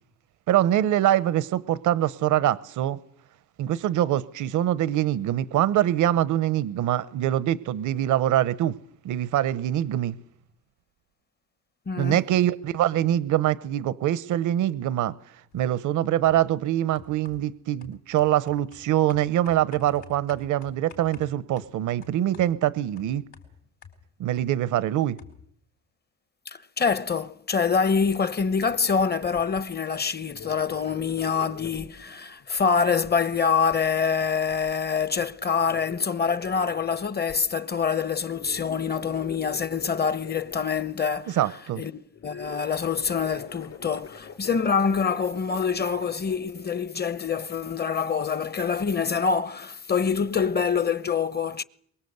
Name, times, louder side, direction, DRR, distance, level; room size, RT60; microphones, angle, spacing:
voice 1, 0.5-3.0 3.6-8.7 9.0-10.2 12.0-15.1 15.5-23.2 24.2-25.2 41.3-41.8, right 12 dB, 80° right, 0.9 m, -24 dB
voice 2, 11.9-12.2 26.8-41.4 41.8-41.9 42.2-51.6, left 6 dB, 35° left, 1.0 m, -25 dB
sound 1, 15.5-15.8 16.2-16.6 16.9-24.6 24.8-24.9 25.2-25.6, left 7 dB, 80° left, 4.8 m, -50 dB
sound 2, 28.6-29.6 29.9-30.0 30.3-37.4 37.8-37.9 38.2-41.3 42.1-46.3, left 6 dB, 55° left, 4.3 m, -44 dB
23.5 x 22.0 x 8.0 m
cardioid pair, 90°, 30 cm